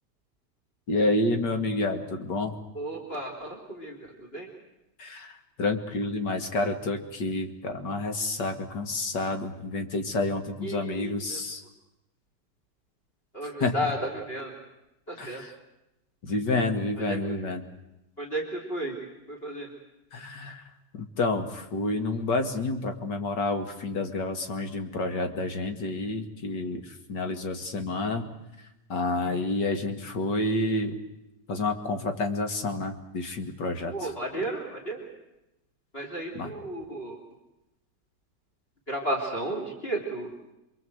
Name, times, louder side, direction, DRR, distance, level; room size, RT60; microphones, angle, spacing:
voice 1, 0.9-2.5 5.0-11.6 13.4-13.7 15.2-15.5 16.2-17.7 20.1-20.6 20.9-28.3 28.9-31.0 31.5-34.1 36.3-36.5, left 2 dB, 85° left, 6 dB, 2.7 m, -29 dB
voice 2, 2.8-4.0 4.3-4.5 10.6-11.4 13.3-14.5 15.1-15.4 17.1-17.2 18.2-18.9 19.3-19.7 33.9-35.0 35.9-37.2 38.9-40.3, right 1 dB, 35° left, 2 dB, 3.6 m, -33 dB
28.5 x 22.0 x 7.9 m, 0.93 s
omnidirectional pair, 1.8 m